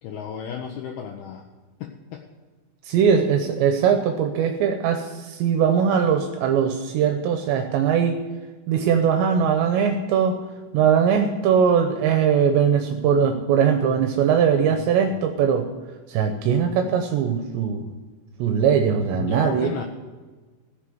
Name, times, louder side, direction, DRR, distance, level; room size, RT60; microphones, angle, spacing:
voice 1, 0.0-1.5 1.8-2.2 13.9-14.1 14.7-14.9 19.1-19.8, left 8 dB, 75° left, 3 dB, 2.6 m, -34 dB
voice 2, 2.9-8.2 8.7-10.4 10.7-15.7 16.1-17.9 18.4-19.7, right 7 dB, 80° right, 5 dB, 3.0 m, -20 dB
15.0 x 7.0 x 7.8 m, 1.3 s
omnidirectional pair, 5.1 m